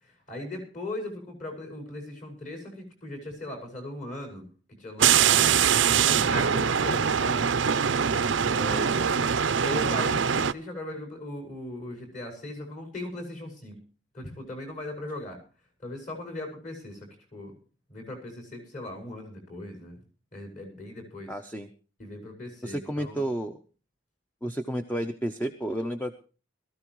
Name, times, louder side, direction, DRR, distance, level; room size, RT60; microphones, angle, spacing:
voice 1, 0.0-4.5 4.8-5.7 6.0-7.5 8.4-9.3 9.6-13.8 14.1-15.4 15.8-17.5 17.9-20.0 20.3-21.3 22.0-23.3, left 1 dB, 40° left, 3 dB, 5.6 m, -38 dB
sound 1, 5.0-10.5, right 7 dB, 70° right, 0.6 m, -23 dB
voice 2, 21.3-21.7 22.6-23.6 24.4-26.1, right 1 dB, 10° left, 8 dB, 0.7 m, -31 dB
21.0 x 14.0 x 3.1 m, 0.36 s
head